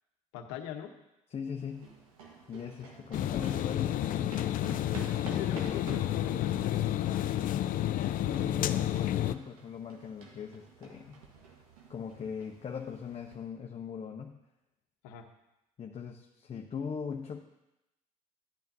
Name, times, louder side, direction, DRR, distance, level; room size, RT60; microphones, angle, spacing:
voice 1, 0.3-0.9 4.6-7.3 7.9-8.0 15.0-15.2, left 9 dB, 75° left, 6 dB, 0.9 m, -41 dB
voice 2, 1.3-1.9 2.5-4.5 5.3-6.0 8.3-11.2 11.9-14.4 15.8-17.4, left 6 dB, 35° left, 2 dB, 0.8 m, -40 dB
sound 1, 1.6-13.4, right 4 dB, 90° right, 1.4 m, -51 dB
sound 2, 3.1-9.3, left 12 dB, 50° left, 0.4 m, -30 dB
12.0 x 8.6 x 2.7 m, 0.92 s
hypercardioid pair, 65°, 18 cm